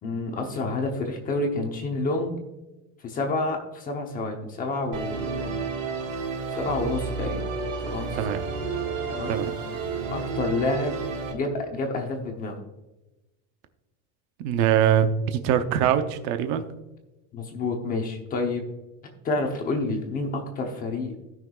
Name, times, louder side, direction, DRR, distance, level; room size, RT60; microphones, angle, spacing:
voice 1, 0.0-2.4 3.0-5.6 6.5-7.4 7.8-8.4 9.1-9.3 10.1-11.0 11.3-12.6 17.3-18.6 19.2-21.1, left 2 dB, 20° left, 3 dB, 0.9 m, -29 dB
Musical instrument, 4.9-11.3, right 5 dB, 70° right, 1.9 m, -31 dB
voice 2, 14.4-16.7, right 9 dB, 40° right, 9 dB, 0.7 m, -23 dB
16.5 x 6.0 x 2.4 m, 1.0 s
cardioid pair, 180°, 42 cm